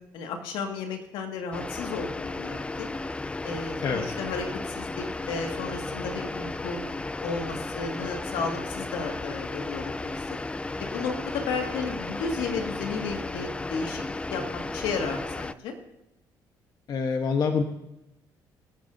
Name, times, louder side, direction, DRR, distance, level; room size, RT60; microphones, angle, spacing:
voice 1, 0.1-2.9 3.4-6.8 7.2-10.4 10.8-14.0 14.3-15.8, left 4 dB, 85° left, 3 dB, 2.0 m, -33 dB
sound 1, 1.5-15.5, left 2 dB, 15° left, 0.4 m, -34 dB
voice 2, 16.9-17.6, left 5 dB, 55° left, 4 dB, 1.1 m, -25 dB
24.0 x 8.9 x 2.7 m, 0.91 s
cardioid pair, 95°, 8 cm